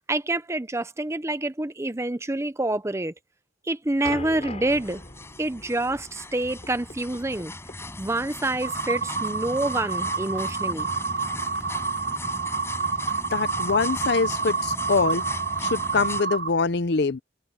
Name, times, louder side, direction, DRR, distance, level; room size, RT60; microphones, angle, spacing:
voice 1, 0.1-3.1 3.6-5.0 5.4-7.5 8.0-10.9, right 2 dB, 15° right, 0.6 m, -27 dB
sound 1, 4.0-9.5, left 2 dB, 35° left, 4.9 m, -42 dB
sound 2, 4.7-16.2, left 2 dB, 15° left, 5.6 m, -38 dB
sound 3, 8.6-16.5, right 5 dB, 80° right, 1.6 m, -28 dB
voice 2, 13.3-15.2 15.6-17.2, left 4 dB, 60° left, 0.6 m, -24 dB
head